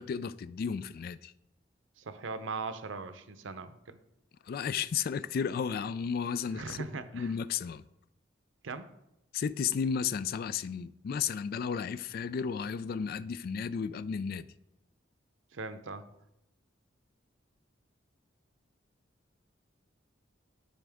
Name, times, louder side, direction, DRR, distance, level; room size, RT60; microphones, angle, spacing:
voice 1, 0.0-1.3 4.5-6.8 7.1-7.8 9.3-14.5, left 6 dB, 50° left, 0.3 m, -33 dB
voice 2, 2.0-4.0 6.5-7.3 8.6-8.9 15.5-16.0, right 4 dB, 90° right, 0.7 m, -39 dB
11.0 x 5.2 x 3.5 m
head